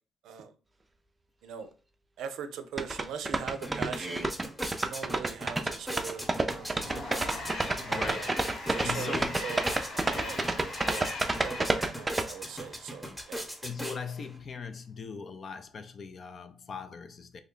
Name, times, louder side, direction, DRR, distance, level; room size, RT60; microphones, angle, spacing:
voice 1, 2.2-4.3 4.8-6.3 6.5-7.3 7.9-8.3 8.7-9.2 9.4-10.4 10.8-13.5, right 7 dB, 80° right, 0.4 m, -41 dB
sound 1, 2.8-12.2, right 2 dB, 20° right, 0.4 m, -29 dB
sound 2, 3.1-3.2 3.5-14.4, equal, 5° left, 0.9 m, -40 dB
Train, 5.7-13.2, left 2 dB, 70° left, 1.3 m, -41 dB
voice 2, 7.8-8.4 8.8-9.4 13.6-17.4, left 5 dB, 50° left, 0.4 m, -40 dB
3.2 x 2.2 x 3.7 m
cardioid pair, 90°, 0 cm